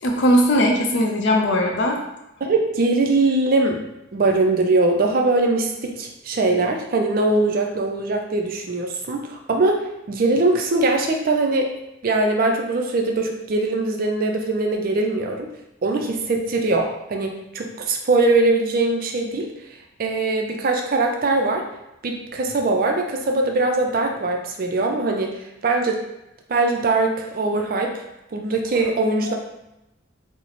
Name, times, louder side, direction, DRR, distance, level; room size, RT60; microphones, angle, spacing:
voice 1, 0.0-2.0 28.7-28.9, equal, 60° left, 1 dB, 0.5 m, -19 dB
voice 2, 2.4-3.8 4.1-11.7 12.0-15.5 15.8-19.5 20.0-21.6 22.0-26.0 26.5-28.0 28.3-29.3, right 2 dB, 45° right, 2 dB, 0.4 m, -21 dB
3.9 x 2.0 x 3.0 m, 0.91 s
head